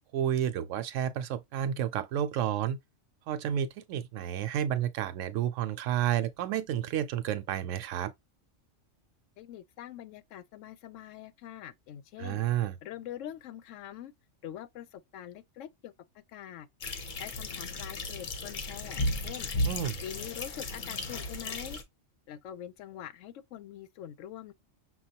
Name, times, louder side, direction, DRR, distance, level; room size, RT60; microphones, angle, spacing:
voice 1, 0.1-2.8 3.3-8.1 12.2-12.8 19.6-20.0, right 10 dB, 80° right, 1.0 m, -31 dB
voice 2, 9.4-12.4 12.8-14.1 14.4-16.7 17.2-19.5 20.0-21.8 22.3-24.5, left 11 dB, 80° left, 0.9 m, -44 dB
sound 1, 16.8-21.8, left 1 dB, 45° left, 0.8 m, -34 dB
6.1 x 2.3 x 2.7 m
omnidirectional pair, 1.3 m